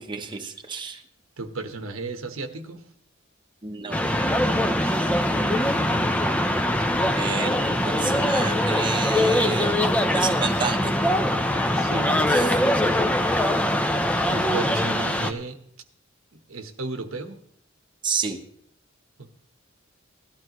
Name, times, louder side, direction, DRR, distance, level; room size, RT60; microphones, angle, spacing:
voice 1, 0.1-1.0 3.6-4.0 7.1-9.8 10.1-10.9 12.3-12.5 18.0-18.4, right 5 dB, 25° right, 3 dB, 1.0 m, -30 dB
voice 2, 1.4-2.8 11.7-12.3 14.3-15.6 16.3-17.4 19.2-19.3, right 3 dB, 90° right, 6 dB, 1.2 m, -34 dB
sound 1, 3.9-15.3, left 1 dB, 5° left, 0.7 m, -22 dB
17.5 x 12.0 x 3.1 m, 0.67 s
head